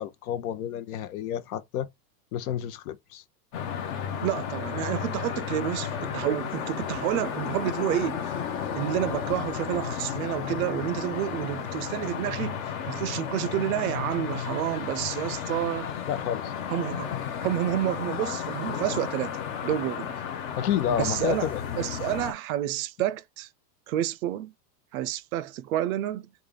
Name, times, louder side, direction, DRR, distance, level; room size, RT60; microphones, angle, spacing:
voice 1, 0.0-1.9 2.3-3.2 16.1-16.5 20.6-21.8, left 10 dB, 60° left, 0.8 m, -30 dB
sound 1, 3.5-22.3, left 8 dB, 25° left, 0.5 m, -33 dB
voice 2, 4.2-8.3 8.7-12.6 12.9-15.9 16.7-17.1 17.4-20.1 20.9-21.5 21.8-23.5 23.9-24.5 24.9-26.3, right 13 dB, 60° right, 0.5 m, -29 dB
3.3 x 2.4 x 3.7 m
supercardioid pair, 140°, 50 cm